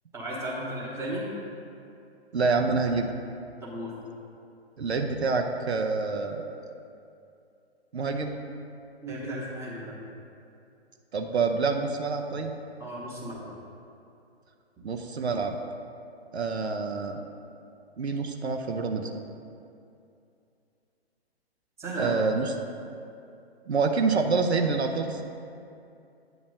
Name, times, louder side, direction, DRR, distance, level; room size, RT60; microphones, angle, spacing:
voice 1, 0.1-1.3 3.6-3.9 9.0-10.0 12.8-13.4 21.8-22.1, right 1 dB, 10° right, -5 dB, 1.0 m, -34 dB
voice 2, 2.3-3.1 4.8-6.6 7.9-8.4 11.1-12.5 14.8-15.6 16.3-17.2 18.0-19.1 22.0-22.5 23.7-25.2, right 4 dB, 85° right, 4 dB, 0.6 m, -27 dB
8.9 x 3.0 x 6.3 m, 2.6 s
figure-of-eight pair, 130°, 32 cm